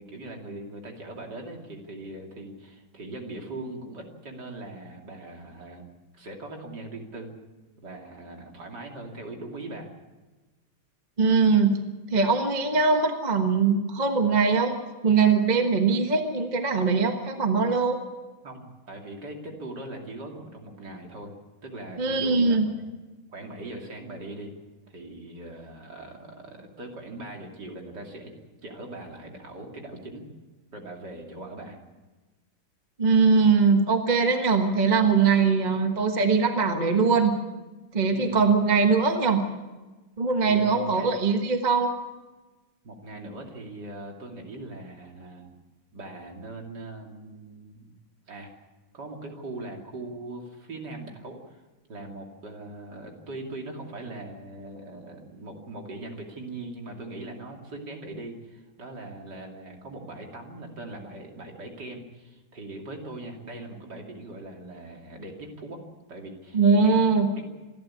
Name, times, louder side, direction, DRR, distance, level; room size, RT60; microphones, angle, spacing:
voice 1, 0.0-5.9 6.1-7.3 7.8-9.9 18.4-21.3 21.6-22.8 23.3-24.5 24.9-28.3 28.6-30.2 30.7-31.8 38.1-38.4 40.4-41.1 42.8-45.5 45.9-47.9 48.3-48.5 48.9-51.6 51.9-65.8 66.1-67.0, right 2 dB, 50° right, 1 dB, 3.3 m, -40 dB
voice 2, 11.2-11.8 12.1-14.8 15.0-18.0 22.0-22.7 33.0-37.3 37.9-39.4 40.2-41.9 66.5-67.3, right 4 dB, 25° right, 5 dB, 1.2 m, -21 dB
26.5 x 12.0 x 8.5 m, 1.2 s
omnidirectional pair, 2.4 m